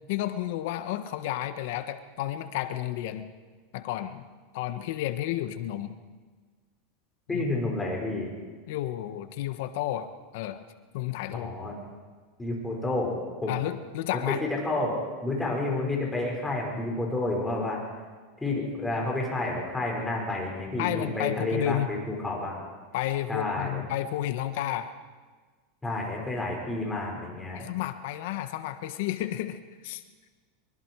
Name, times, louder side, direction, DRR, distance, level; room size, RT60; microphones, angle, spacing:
voice 1, 0.1-3.3 3.7-4.3 4.5-5.9 7.3-7.4 8.7-10.6 10.9-11.6 13.5-14.4 20.8-21.9 22.9-24.9 27.5-30.0, left 13 dB, 65° left, 9 dB, 1.4 m, -31 dB
voice 2, 7.3-8.3 11.3-11.7 12.4-13.5 14.1-17.8 18.4-22.6 23.3-23.8 25.8-27.7, left 2 dB, 10° left, -1 dB, 5.7 m, -30 dB
24.5 x 23.5 x 4.8 m, 1.4 s
supercardioid pair, 140°, 0 cm